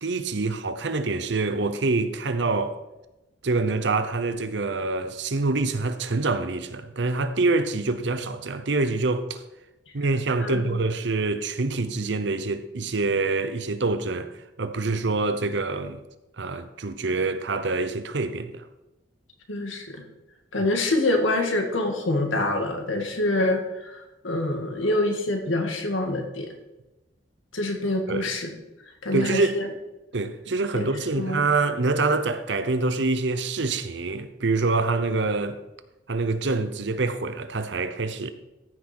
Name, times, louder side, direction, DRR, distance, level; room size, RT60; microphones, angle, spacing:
voice 1, 0.0-2.8 3.4-9.4 9.9-14.3 14.6-16.0 16.4-18.7 28.1-28.3 29.1-29.6 30.1-35.6 36.1-38.3, right 3 dB, 65° right, 0.8 m, -26 dB
voice 2, 19.5-20.0 20.5-26.5 27.5-28.5 29.0-29.7 30.8-30.9 31.1-31.4 35.3-35.4, left 2 dB, 85° left, 1.9 m, -26 dB
14.5 x 6.2 x 4.4 m
head